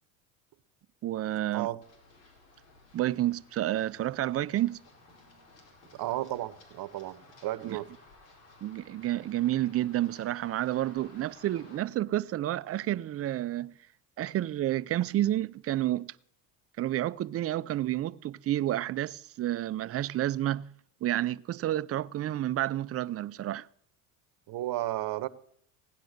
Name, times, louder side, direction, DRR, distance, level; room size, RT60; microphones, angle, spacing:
voice 1, 1.0-1.7 2.9-4.8 7.6-7.8 8.6-13.7 14.2-16.1 16.8-20.7 21.0-23.7, right 13 dB, 35° right, 0.5 m, -30 dB
Run, 1.8-11.8, left 2 dB, 75° left, 4.6 m, -57 dB
voice 2, 5.9-7.9 24.5-25.3, right 15 dB, 50° right, 1.0 m, -33 dB
16.5 x 10.5 x 6.6 m
supercardioid pair, 80°, 43 cm